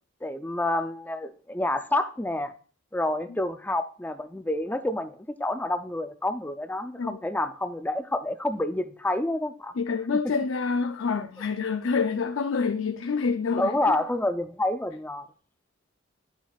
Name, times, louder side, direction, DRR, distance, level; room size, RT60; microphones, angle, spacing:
voice 1, 0.2-2.5 2.9-9.7 13.5-15.2, left 1 dB, 10° left, 0.5 m, -28 dB
voice 2, 9.8-14.0, left 5 dB, 75° left, 0.5 m, -27 dB
11.0 x 7.2 x 2.4 m
head